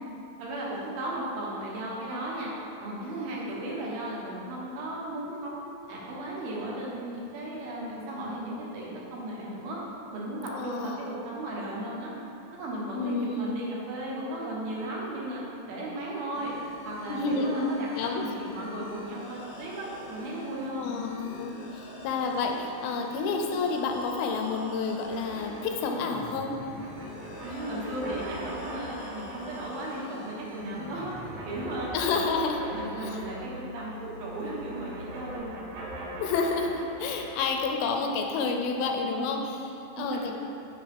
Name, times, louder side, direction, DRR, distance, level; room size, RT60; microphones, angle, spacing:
voice 1, 0.4-2.5 2.8-9.8 10.1-12.1 12.5-15.4 15.7-16.5 16.8-20.9 27.4-31.1 31.5-32.2 32.6-35.6 38.9-39.3 39.9-40.4, right 1 dB, 80° right, -5 dB, 3.0 m, -35 dB
voice 2, 10.5-11.1 12.9-13.6 17.1-17.5 18.0-18.2 20.8-26.6 31.9-32.6 33.0-33.2 36.2-40.3, left 4 dB, 85° left, 3 dB, 2.5 m, -30 dB
sound 1, 16.3-35.4, left 2 dB, 70° left, 1.9 m, -44 dB
sound 2, 25.0-34.0 34.2-37.9, right 1 dB, 65° right, 2.4 m, -43 dB
7.5 x 5.3 x 3.4 m, 2.7 s
omnidirectional pair, 4.3 m